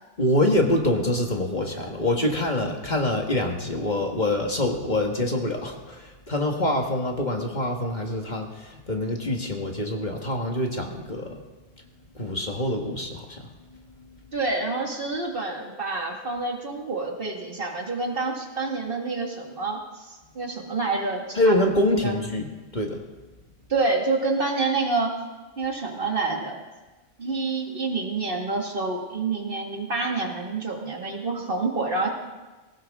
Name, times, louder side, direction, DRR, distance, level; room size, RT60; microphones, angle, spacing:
voice 1, 0.2-11.4 12.2-13.5 14.0-14.2 21.4-23.0, left 1 dB, 40° left, 2 dB, 1.8 m, -25 dB
voice 2, 14.3-21.5 21.8-22.1 23.7-25.1 25.6-26.6 27.2-32.1, right 3 dB, 55° right, 1 dB, 2.2 m, -28 dB
19.5 x 17.0 x 3.7 m, 1.2 s
omnidirectional pair, 1.1 m